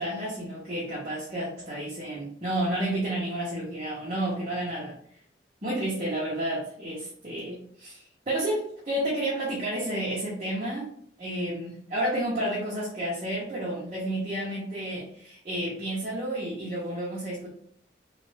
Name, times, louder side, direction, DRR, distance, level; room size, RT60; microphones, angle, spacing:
voice 1, 0.0-5.0 5.6-10.9 11.2-17.5, right 1 dB, 35° right, -7 dB, 0.7 m, -31 dB
3.1 x 2.4 x 3.2 m, 0.62 s
head